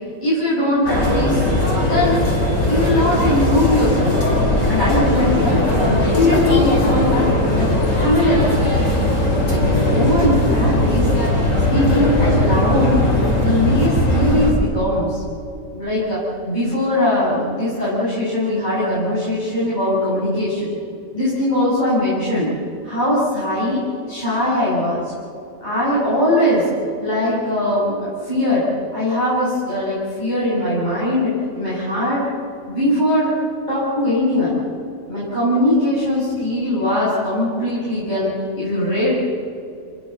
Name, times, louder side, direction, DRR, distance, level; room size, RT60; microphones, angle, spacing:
voice 1, 0.2-1.5 1.8-2.2 2.7-4.2 4.7-7.3 7.5-8.7 9.4-11.1 11.7-13.1 13.4-15.2 15.7-20.7 21.1-22.5 22.8-23.8 24.1-25.1 25.6-26.7 27.0-32.3 32.7-33.3 33.7-34.6 35.1-39.1, left 1 dB, 30° left, -10 dB, 7.7 m, -20 dB
sound 1, 0.8-14.5, left 1 dB, 60° left, 4.9 m, -18 dB
29.0 x 20.5 x 6.8 m, 2.4 s
omnidirectional pair, 1.5 m